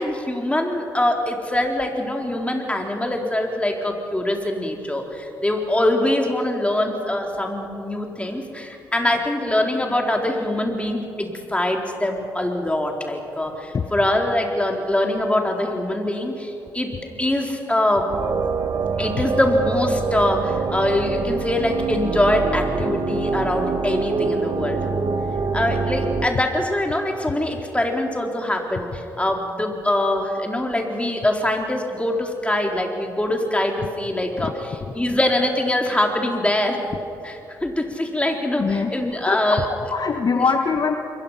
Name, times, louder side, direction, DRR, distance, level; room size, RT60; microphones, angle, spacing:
voice 1, 0.0-16.9 17.2-18.1 19.0-24.9 25.5-36.8 37.2-39.7 40.3-40.5, left 1 dB, 15° left, 2 dB, 4.0 m, -23 dB
sound 1, 18.1-26.3, right 5 dB, 45° right, 1.4 m, -25 dB
voice 2, 38.6-38.9 39.3-39.4 39.7-41.0, left 5 dB, 40° left, 6 dB, 1.3 m, -22 dB
27.5 x 22.0 x 5.8 m, 2.8 s
hypercardioid pair, 40°, 10 cm